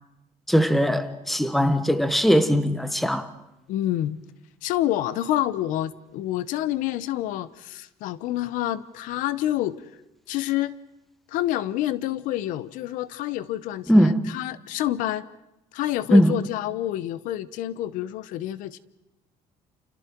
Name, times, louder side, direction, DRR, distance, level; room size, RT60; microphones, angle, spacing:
voice 1, 0.5-3.3 13.9-14.3 16.1-16.4, equal, ahead, 1.0 m, -20 dB
voice 2, 3.7-4.2 4.6-9.8 10.3-10.8 11.3-15.3 15.7-18.8, left 13 dB, 80° left, 0.9 m, -28 dB
29.0 x 29.0 x 4.6 m
cardioid pair, 165°, 13 cm